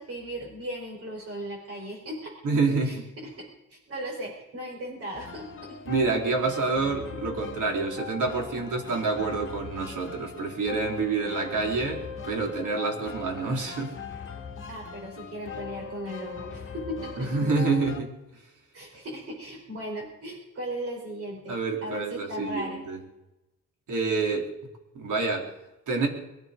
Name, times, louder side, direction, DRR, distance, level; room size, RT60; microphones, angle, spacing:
voice 1, 0.0-2.3 2.8-3.0 3.4-3.5 3.7-5.8 14.7-17.5 18.7-22.8, right 1 dB, 50° right, -1 dB, 5.1 m, -37 dB
voice 2, 2.4-3.1 5.9-14.0 17.2-18.1 21.5-23.0 23.9-24.5 24.9-25.5 25.9-26.1, right 4 dB, 85° right, 2 dB, 3.9 m, -27 dB
sound 1, 5.1-18.0, left 6 dB, 45° left, 2.3 m, -40 dB
22.0 x 12.0 x 5.2 m, 0.95 s
wide cardioid pair, 140°, 30 cm